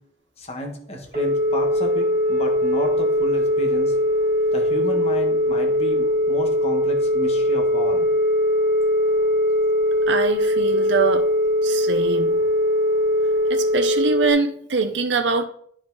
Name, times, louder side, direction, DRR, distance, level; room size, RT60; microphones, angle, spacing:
voice 1, 0.4-3.9 4.5-8.1, equal, 35° left, 2 dB, 1.5 m, -32 dB
Telephone, 1.1-14.3, left 1 dB, 40° right, 2.5 m, -20 dB
voice 2, 10.1-11.3 11.6-12.4 13.5-15.4, right 4 dB, 70° right, 7 dB, 0.7 m, -23 dB
9.8 x 5.0 x 4.0 m, 0.63 s
head